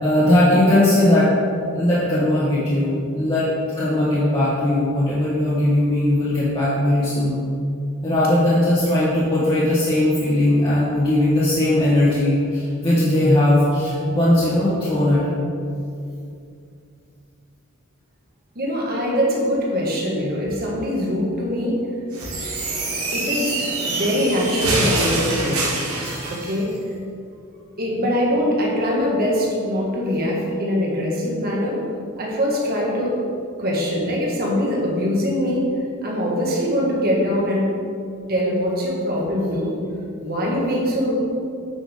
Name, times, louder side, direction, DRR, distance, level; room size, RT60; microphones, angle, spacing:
voice 1, 0.0-1.3 1.7-3.5 3.8-7.4 8.0-15.5, left 1 dB, 25° left, -11 dB, 1.5 m, -19 dB
voice 2, 18.6-21.8 23.1-23.6 23.9-25.7 26.3-26.7 27.8-31.8 32.2-33.2 33.6-35.6 36.0-37.7 38.3-39.7 40.2-41.1, equal, 45° right, -3 dB, 1.7 m, -22 dB
sound 1, 22.1-26.6, right 2 dB, 85° right, 1.8 m, -25 dB
9.2 x 5.9 x 3.8 m, 2.5 s
head